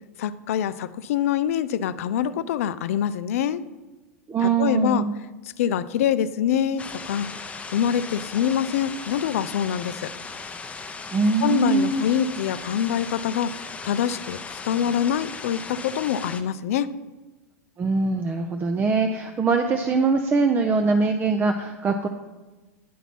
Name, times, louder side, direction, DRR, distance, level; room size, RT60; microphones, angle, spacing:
voice 1, 0.2-3.6 4.4-5.1 5.6-7.3 7.7-10.1 11.4-14.4 14.6-16.9, left 9 dB, 65° left, 16 dB, 0.4 m, -25 dB
voice 2, 4.3-5.1 11.1-12.0 17.8-22.1, right 4 dB, 25° right, 5 dB, 0.5 m, -22 dB
sound 1, 6.8-16.4, left 4 dB, 15° left, 0.7 m, -37 dB
10.0 x 4.0 x 5.8 m, 1.2 s
figure-of-eight pair, 90°, 8 cm